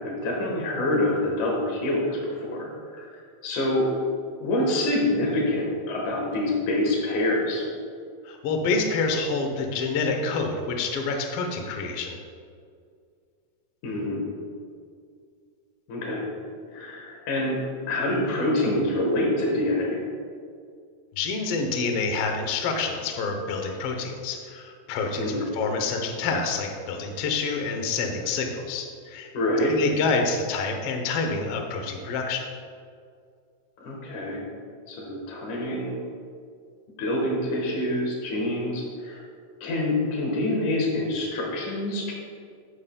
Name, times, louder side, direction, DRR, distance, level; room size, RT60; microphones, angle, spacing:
voice 1, 0.0-3.1 3.4-3.9 4.4-7.7 13.8-14.2 15.9-16.3 16.7-17.6 17.9-20.0 25.2-25.5 29.3-29.7 33.8-34.4 34.9-35.9 37.0-39.2 39.6-42.1, left 1 dB, 70° left, -1 dB, 2.8 m, -26 dB
voice 2, 8.2-12.2 21.2-29.3 29.7-32.4, left 4 dB, 85° left, 4 dB, 1.2 m, -27 dB
9.4 x 8.7 x 2.2 m, 2.2 s
omnidirectional pair, 3.7 m